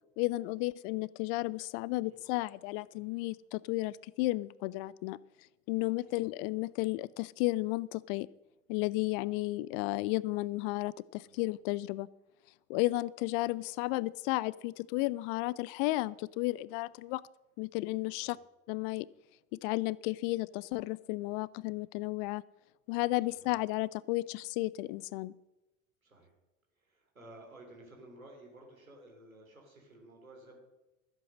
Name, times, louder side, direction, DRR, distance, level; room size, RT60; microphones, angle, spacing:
voice 1, 0.2-5.2 5.7-8.3 8.7-12.1 12.7-17.2 17.6-18.4 18.7-19.1 19.5-22.4 22.9-25.3, left 20 dB, 45° left, 23 dB, 0.4 m, -33 dB
voice 2, 26.0-26.3 26.8-30.6, right 1 dB, 85° right, 1 dB, 3.2 m, -54 dB
14.5 x 8.1 x 6.3 m, 1.0 s
figure-of-eight pair, 70°, 40 cm